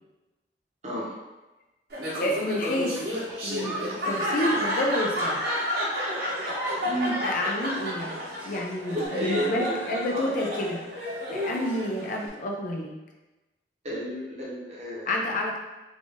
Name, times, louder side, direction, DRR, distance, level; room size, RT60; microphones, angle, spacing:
Laughter, 1.9-12.3, equal, 60° right, 1.2 m, -31 dB
voice 1, 2.2-3.0 3.4-5.4 7.2-8.2 8.4-10.8 11.3-12.9 15.1-15.6, left 1 dB, 50° left, 0 dB, 0.5 m, -29 dB
sound 1, 2.9-7.7 8.9-9.1, right 1 dB, 10° right, 1.0 m, -38 dB
voice 2, 6.8-7.2 8.9-10.3 13.8-15.1, equal, 40° right, -6 dB, 1.0 m, -32 dB
3.4 x 2.6 x 3.5 m, 1.1 s
head